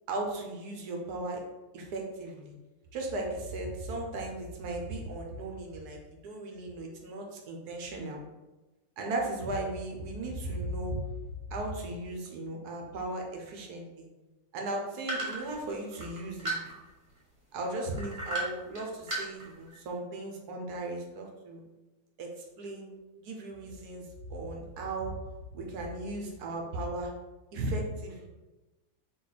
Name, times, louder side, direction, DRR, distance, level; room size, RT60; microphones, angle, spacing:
voice 1, 0.1-1.4 1.7-2.5 2.9-8.2 9.0-11.0 11.5-14.1 14.5-16.6 17.5-21.6 22.2-22.3 22.6-22.9 23.2-25.2 25.5-27.1 27.5-28.3, right 2 dB, 65° right, 1 dB, 1.2 m, -36 dB
sound 1, 15.1-17.1 17.9-18.8 19.1-19.7, right 2 dB, 30° right, 1.1 m, -34 dB
3.9 x 2.5 x 4.0 m, 1.1 s
omnidirectional pair, 2.1 m